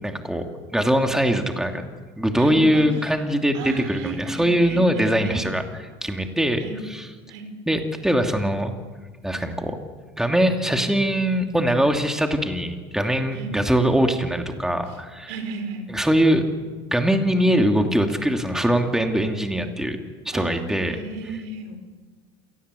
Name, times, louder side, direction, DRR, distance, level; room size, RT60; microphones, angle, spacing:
voice 1, 0.0-0.4 0.7-1.8 2.2-5.6 6.0-6.6 6.9-7.0 7.7-8.7 9.2-9.8 10.2-15.3 15.9-16.4 16.9-20.0 20.2-21.0, equal, 5° right, 4 dB, 2.8 m, -22 dB
voice 2, 2.4-3.2 3.5-5.4 6.6-6.8 7.3-7.5 13.3-13.5 14.9-15.0 15.3-15.9 20.3-21.8, right 3 dB, 75° right, 8 dB, 4.9 m, -34 dB
27.5 x 19.0 x 8.4 m, 1.4 s
supercardioid pair, 100°, 14 cm